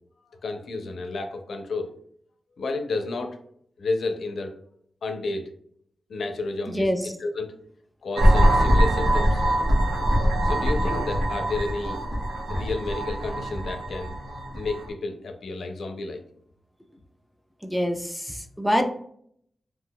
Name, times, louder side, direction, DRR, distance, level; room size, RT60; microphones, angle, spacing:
voice 1, 0.4-1.9 2.6-3.4 3.8-4.5 5.0-5.5 6.1-7.5 8.0-9.4 10.4-12.0 12.5-14.1 14.5-16.2, left 3 dB, 85° left, 6 dB, 0.4 m, -31 dB
sound 1, 8.2-14.9, equal, 65° right, 0.8 m, -22 dB
voice 2, 17.6-18.8, equal, ahead, 3 dB, 0.3 m, -25 dB
2.4 x 2.2 x 3.8 m, 0.66 s
wide cardioid pair, 145°, 0 cm